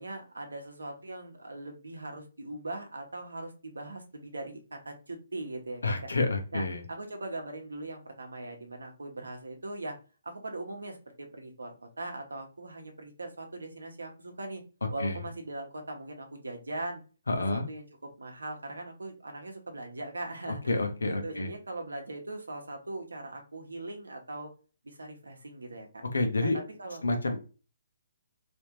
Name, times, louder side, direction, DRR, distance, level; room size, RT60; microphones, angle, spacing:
voice 1, 0.0-6.1 6.5-10.0 10.2-14.6 14.9-17.0 17.5-24.5 24.8-26.0 26.4-27.0, right 2 dB, 85° right, 3 dB, 1.1 m, -40 dB
voice 2, 5.8-6.8 15.0-15.2 17.3-17.7 20.7-21.5 26.1-26.6 27.0-27.4, left 2 dB, 85° left, 5 dB, 1.0 m, -28 dB
3.5 x 3.1 x 2.9 m, 0.35 s
hypercardioid pair, 145°, 0 cm